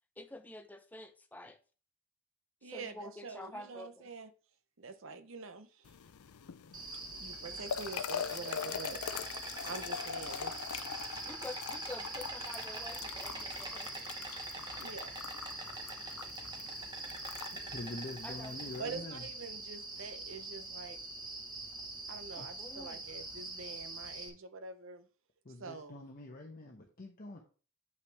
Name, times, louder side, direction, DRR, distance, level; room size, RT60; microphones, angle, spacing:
voice 1, 0.2-1.6 2.6-3.9 11.2-14.1 16.1-16.3 18.2-19.0 22.4-23.0, left 2 dB, 5° left, 7 dB, 0.6 m, -48 dB
voice 2, 2.6-4.3 4.8-5.9 7.2-9.0 9.6-10.5 14.8-15.1 18.8-21.0 22.1-25.1 25.6-25.9, right 4 dB, 60° right, 11 dB, 0.7 m, -45 dB
sound 1, 5.9-18.8, left 8 dB, 85° left, 0.5 m, -43 dB
Insect, 6.7-24.3, right 2 dB, 20° right, 1.1 m, -43 dB
voice 3, 17.5-19.3 22.4-22.5 25.4-27.4, left 2 dB, 40° left, 1 dB, 0.9 m, -45 dB
8.0 x 5.8 x 3.4 m, 0.38 s
head